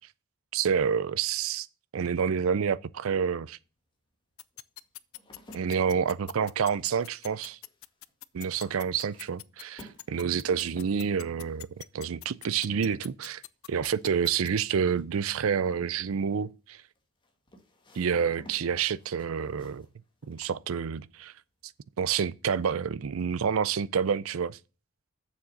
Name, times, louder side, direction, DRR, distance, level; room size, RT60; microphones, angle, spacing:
voice 1, 0.5-1.7 1.9-3.6 5.5-7.6 8.3-13.4 13.7-16.8 17.9-19.9 20.2-21.3 22.0-24.6, right 7 dB, 75° right, 0.4 m, -28 dB
sound 1, 3.3-3.4 4.1-21.3 21.6-22.1, equal, 25° left, 1.7 m, -56 dB
sound 2, 4.4-14.5, left 17 dB, 75° left, 0.4 m, -43 dB
7.1 x 6.5 x 5.6 m
head